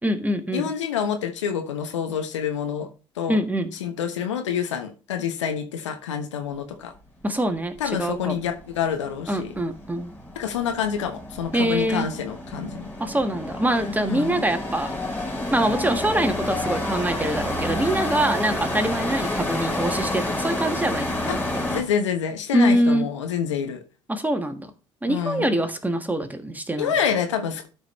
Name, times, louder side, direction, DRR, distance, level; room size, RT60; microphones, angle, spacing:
voice 1, 0.0-0.7 3.3-3.7 7.2-8.4 9.3-10.1 11.5-12.1 13.0-14.9 15.5-21.1 22.5-23.1 24.1-24.7 25.0-26.9, right 1 dB, 10° right, 1.5 m, -24 dB
voice 2, 0.5-2.9 3.2-3.4 3.8-6.9 7.8-9.5 10.3-12.8 14.0-14.4 21.3-21.4 21.7-23.8 25.1-25.5 26.8-27.7, left 8 dB, 80° left, 1.1 m, -27 dB
sound 1, 7.6-7.7 7.9-21.8, left 1 dB, 10° left, 4.0 m, -29 dB
12.0 x 5.3 x 3.2 m
figure-of-eight pair, 55°, 15 cm